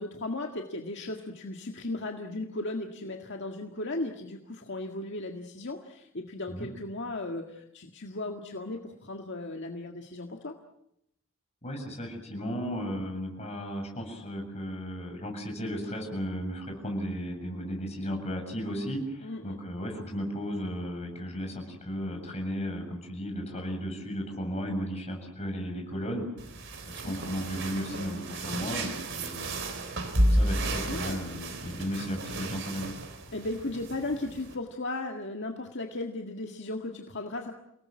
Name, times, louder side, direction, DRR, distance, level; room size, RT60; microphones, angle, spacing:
voice 1, 0.0-10.5 19.2-19.6 27.0-27.2 30.9-31.2 33.3-37.5, left 2 dB, 60° left, 3 dB, 1.9 m, -36 dB
voice 2, 11.6-26.2 26.8-29.5 30.3-32.9, equal, 30° left, 2 dB, 7.4 m, -35 dB
sound 1, 26.4-34.6, right 1 dB, 60° right, 4.0 m, -32 dB
29.5 x 19.0 x 7.5 m, 0.78 s
head